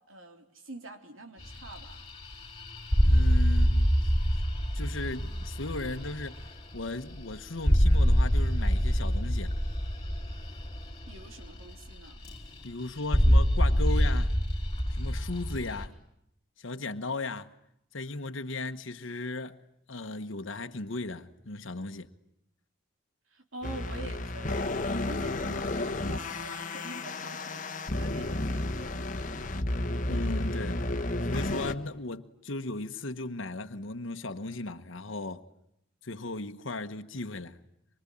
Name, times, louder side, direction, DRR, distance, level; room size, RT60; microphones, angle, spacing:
voice 1, 0.1-2.0 11.1-12.2 23.3-29.0, right 2 dB, 80° right, 3.5 m, -46 dB
sound 1, 1.4-11.9 12.2-12.7 13.0-15.9, equal, 25° left, 3.9 m, -26 dB
voice 2, 3.0-4.1 4.7-6.5 6.7-9.6 12.6-14.4 14.9-15.9 16.6-17.5 17.9-19.6 19.9-22.1 30.1-30.9 31.3-35.4 36.0-37.6, left 2 dB, 70° left, 1.2 m, -36 dB
sound 2, 23.6-31.7, left 2 dB, 40° left, 1.4 m, -32 dB
25.0 x 24.0 x 10.0 m
head